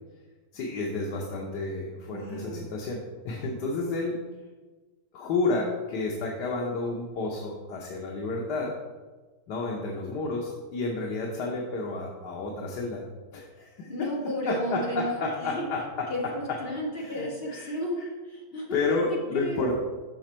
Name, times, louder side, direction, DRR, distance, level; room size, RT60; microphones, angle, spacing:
voice 1, 0.5-4.2 5.1-8.7 9.5-13.0 13.3-13.9 14.5-16.1 17.0-17.7 18.7-19.8, left 3 dB, 85° left, -1 dB, 1.4 m, -31 dB
voice 2, 2.1-2.7 13.9-15.7 16.1-19.7, equal, 35° left, -3 dB, 1.7 m, -33 dB
6.3 x 5.9 x 4.3 m, 1.3 s
omnidirectional pair, 1.7 m